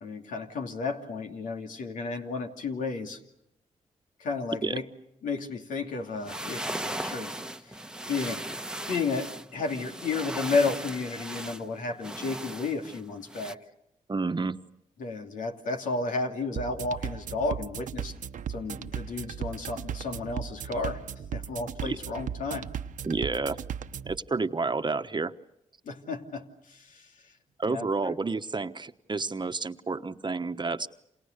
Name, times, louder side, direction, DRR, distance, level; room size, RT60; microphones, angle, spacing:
voice 1, 0.0-3.2 4.2-4.8 5.2-7.3 7.6-7.8 8.1-13.6 15.0-18.1 18.5-21.0 21.3-22.7 25.8-27.1 27.6-28.1, left 3 dB, 85° left, 4 dB, 2.7 m, -32 dB
sound 1, 6.1-13.5, right 1 dB, 5° right, 1.2 m, -38 dB
voice 2, 14.1-14.6 21.8-22.0 23.0-23.6 24.0-25.3 27.6-30.9, right 4 dB, 35° right, 10 dB, 1.2 m, -30 dB
sound 2, 16.6-24.2, right 8 dB, 85° right, 1.1 m, -37 dB
30.0 x 27.0 x 6.7 m, 0.81 s
cardioid pair, 55°, 13 cm